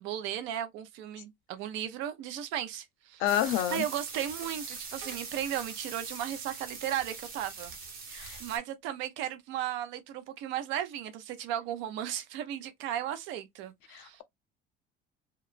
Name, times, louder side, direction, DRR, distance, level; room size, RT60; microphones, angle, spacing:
voice 1, 0.0-7.7 8.1-14.2, right 11 dB, 70° right, 0.5 m, -36 dB
voice 2, 3.2-3.8 8.2-8.4 13.9-14.2, left 11 dB, 70° left, 0.5 m, -29 dB
sound 1, 3.3-8.6, right 4 dB, 50° right, 0.9 m, -42 dB
2.9 x 2.2 x 2.4 m
cardioid pair, 180°, 20 cm